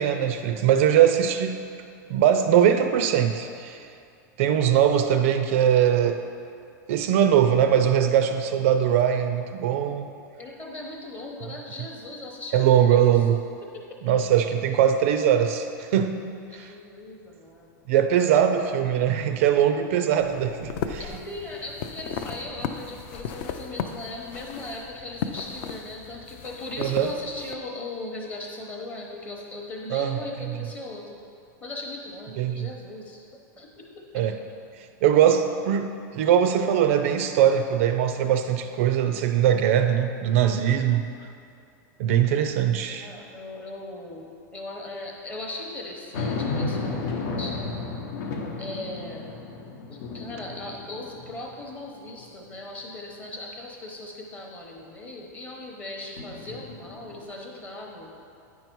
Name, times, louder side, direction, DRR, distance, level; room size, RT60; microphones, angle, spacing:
voice 1, 0.0-1.6 2.1-3.9 4.4-6.2 6.9-10.1 12.5-13.4 14.0-16.2 16.5-16.7 17.9-21.0 26.8-27.1 29.9-30.2 32.4-32.7 34.1-34.4 35.0-41.1 42.0-43.1, right 9 dB, 45° right, 7 dB, 0.4 m, -21 dB
voice 2, 10.4-13.1 13.7-14.0 16.0-16.1 16.5-17.8 21.0-31.2 31.6-33.3 33.6-34.1 42.9-47.6 48.6-49.4 49.9-58.1, left 2 dB, 15° left, -1 dB, 0.8 m, -38 dB
sound 1, 20.2-27.5, left 7 dB, 30° left, 0.4 m, -36 dB
sound 2, 46.1-51.7 52.2-52.3 56.2-57.2, left 3 dB, 75° left, 0.9 m, -33 dB
9.5 x 5.4 x 4.5 m, 2.4 s
supercardioid pair, 180°, 10 cm